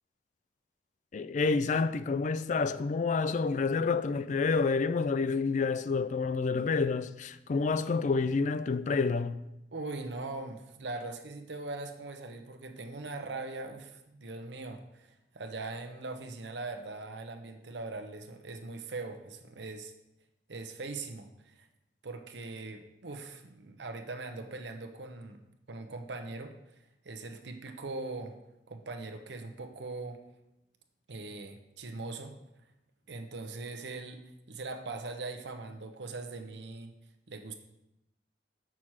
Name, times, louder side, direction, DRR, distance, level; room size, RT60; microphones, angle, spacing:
voice 1, 1.1-9.4, left 4 dB, 45° left, 0.3 m, -28 dB
voice 2, 9.7-19.9 20.5-21.7 22.0-26.6 27.0-28.4 28.7-30.2 31.1-32.4 33.1-34.2 34.5-36.9 37.3-37.5, right 3 dB, 85° right, 0.9 m, -41 dB
7.3 x 6.0 x 4.7 m
head